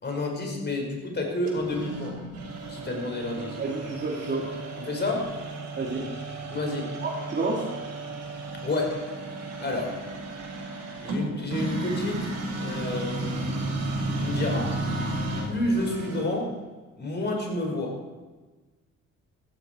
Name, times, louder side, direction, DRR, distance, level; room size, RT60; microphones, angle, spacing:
voice 1, 0.0-2.1 2.7-3.6 4.9-5.3 6.5-6.9 8.6-9.0 9.6-10.0 11.0-12.3 12.6-13.6 14.2-14.7 15.4-16.5 17.0-17.9, left 2 dB, 35° left, 1 dB, 4.9 m, -29 dB
sound 1, 1.5-16.5, right 2 dB, 65° right, 5.7 m, -33 dB
voice 2, 3.6-4.5 5.8-6.1 7.0-7.7, right 3 dB, 35° right, -3 dB, 2.6 m, -29 dB
14.5 x 14.0 x 4.4 m, 1.3 s
cardioid pair, 90°, 30 cm